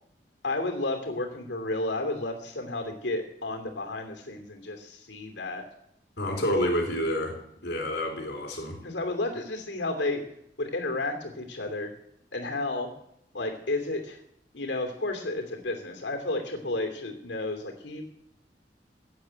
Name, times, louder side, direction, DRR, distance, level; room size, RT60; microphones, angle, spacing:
voice 1, 0.4-5.6 8.8-10.2 10.6-11.9 12.3-12.9 13.3-14.2 14.5-18.0, left 2 dB, 80° left, 4 dB, 2.8 m, -32 dB
voice 2, 6.2-7.4 7.6-8.8, equal, 60° left, 1 dB, 3.6 m, -28 dB
15.5 x 8.1 x 9.0 m, 0.75 s
head